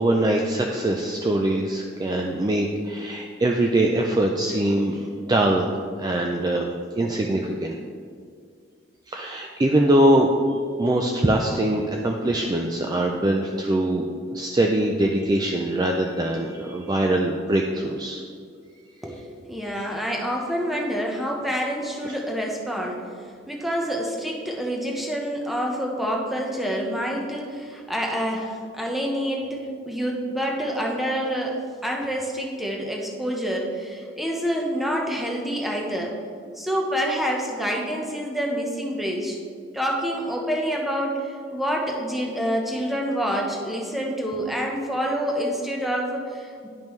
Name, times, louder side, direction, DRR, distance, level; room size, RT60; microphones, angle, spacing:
voice 1, 0.0-7.8 9.1-10.3 10.8-14.0 14.3-18.2 22.0-22.1, right 1 dB, 20° right, 1 dB, 0.3 m, -23 dB
voice 2, 19.0-23.0 23.5-31.6 31.8-36.2 36.5-39.4 39.7-46.7, equal, ahead, -1 dB, 0.8 m, -27 dB
10.5 x 5.3 x 3.1 m, 2.2 s
head